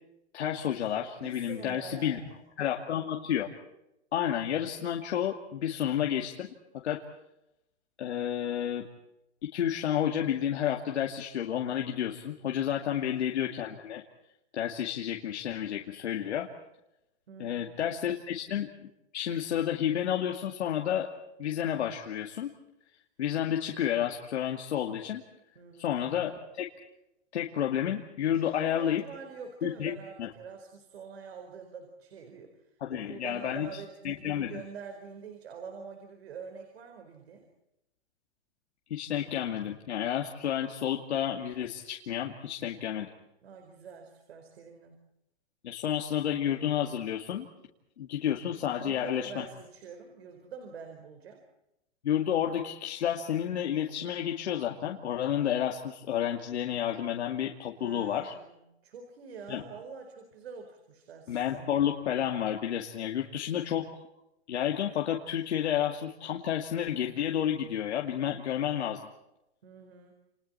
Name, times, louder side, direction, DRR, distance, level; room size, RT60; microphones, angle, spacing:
voice 1, 0.3-2.2 2.6-3.5 4.1-6.5 6.7-7.0 8.0-8.8 9.4-14.0 14.5-16.5 17.4-18.7 19.1-21.1 21.4-22.5 23.2-25.2 25.8-26.7 27.3-29.0 29.6-29.9 30.2-30.3 32.8-33.7 34.0-34.6 38.9-43.1 45.6-47.5 48.0-49.4 52.0-58.3 59.5-59.6 61.3-63.9 64.5-69.1, left 10 dB, 70° left, 1 dB, 2.5 m, -30 dB
voice 2, 1.1-2.4 17.3-17.9 25.5-26.0 28.3-37.5 43.4-45.1 48.8-51.4 57.8-61.8 69.6-70.1, right 6 dB, 60° right, 4 dB, 4.6 m, -46 dB
29.0 x 28.0 x 4.4 m, 0.87 s
hypercardioid pair, 175°, 34 cm